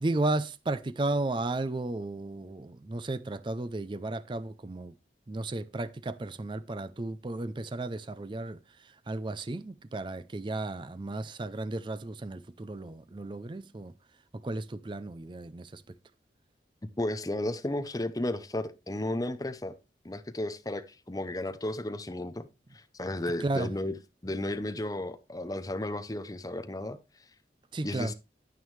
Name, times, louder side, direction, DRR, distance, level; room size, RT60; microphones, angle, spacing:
voice 1, 0.0-4.9 5.3-8.6 9.1-13.9 14.4-15.8 23.4-23.7 27.7-28.1, right 2 dB, 25° right, 0.4 m, -34 dB
voice 2, 17.0-19.7 20.0-22.5 22.7-23.9 24.2-27.0 27.8-28.1, left 1 dB, 20° left, 0.7 m, -33 dB
9.3 x 9.1 x 3.2 m
head